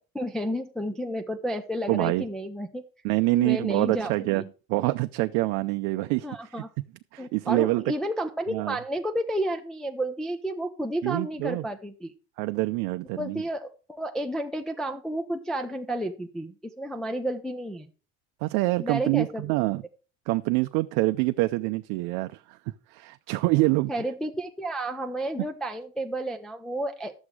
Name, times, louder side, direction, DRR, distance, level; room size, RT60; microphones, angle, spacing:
voice 1, 0.0-2.8 3.3-4.5 6.2-6.7 7.2-12.1 13.2-17.9 18.8-19.5 23.9-27.1, right 1 dB, ahead, 0.4 m, -31 dB
voice 2, 1.9-2.2 3.0-4.4 4.7-6.3 7.1-7.8 8.5-8.8 11.0-11.6 12.4-13.4 18.4-19.8 20.3-22.6 22.9-23.9, right 21 dB, 60° right, 0.5 m, -25 dB
11.5 x 7.2 x 4.8 m
cardioid pair, 170°, 32 cm